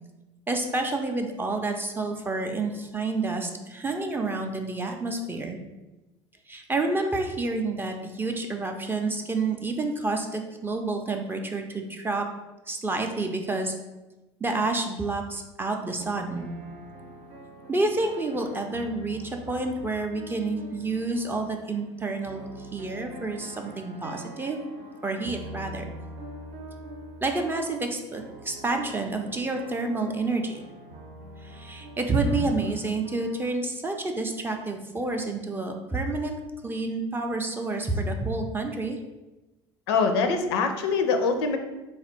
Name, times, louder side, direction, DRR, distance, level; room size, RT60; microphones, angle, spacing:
voice 1, 0.5-5.6 6.5-12.3 12.7-13.7 14.4-16.5 17.7-24.7 25.0-25.8 27.2-30.6 31.4-39.0, right 3 dB, 15° right, 3 dB, 0.5 m, -29 dB
sound 1, 16.0-33.5, right 1 dB, 50° right, 0.7 m, -44 dB
voice 2, 39.9-41.6, left 4 dB, 65° left, 6 dB, 0.5 m, -23 dB
3.4 x 2.4 x 4.3 m, 1.0 s
figure-of-eight pair, 70°, 14 cm